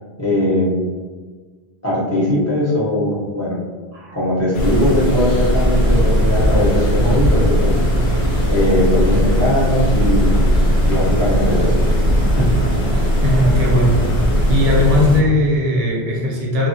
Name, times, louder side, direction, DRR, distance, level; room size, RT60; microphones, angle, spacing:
voice 1, 0.2-0.7 1.8-3.6 4.1-7.8 8.5-10.3 10.8-11.7 12.0-12.5, left 1 dB, 15° left, -10 dB, 0.9 m, -19 dB
sound 1, 4.5-15.2, equal, 75° left, 0.8 m, -23 dB
sound 2, 4.6-15.2, equal, 55° right, 0.8 m, -18 dB
voice 2, 13.2-14.0 14.5-16.7, left 1 dB, 75° right, -4 dB, 1.0 m, -17 dB
2.4 x 2.1 x 2.7 m, 1.4 s
omnidirectional pair, 1.1 m